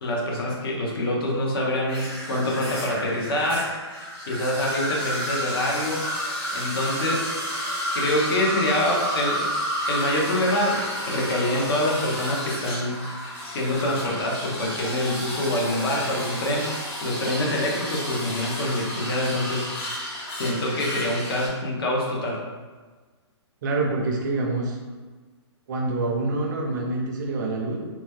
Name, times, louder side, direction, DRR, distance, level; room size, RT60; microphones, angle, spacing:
voice 1, 0.0-3.7 4.3-6.0 6.5-7.3 7.9-9.5 9.9-13.1 13.4-16.7 17.0-19.9 20.3-22.4, left 1 dB, 55° left, -2 dB, 0.8 m, -25 dB
sound 1, 1.9-21.5, equal, 25° left, 1.0 m, -31 dB
voice 2, 23.6-24.8 25.7-27.8, right 2 dB, 40° right, 1 dB, 0.5 m, -26 dB
2.9 x 2.1 x 3.4 m, 1.4 s
hypercardioid pair, 165°, 15 cm